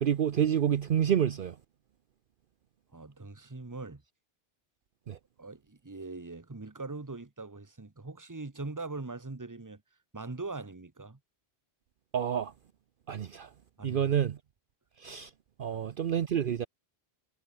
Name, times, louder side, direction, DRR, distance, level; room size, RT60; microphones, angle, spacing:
voice 1, 0.0-1.5 5.1-5.2 12.1-12.5 13.1-13.5 13.8-14.4 15.0-15.3 15.6-16.7, right 9 dB, 60° right, 0.8 m, -28 dB
voice 2, 2.9-4.0 5.4-9.8 10.1-11.2 13.8-14.1 15.6-15.9, right 3 dB, 20° right, 1.2 m, -41 dB
omnidirectional pair, 1.1 m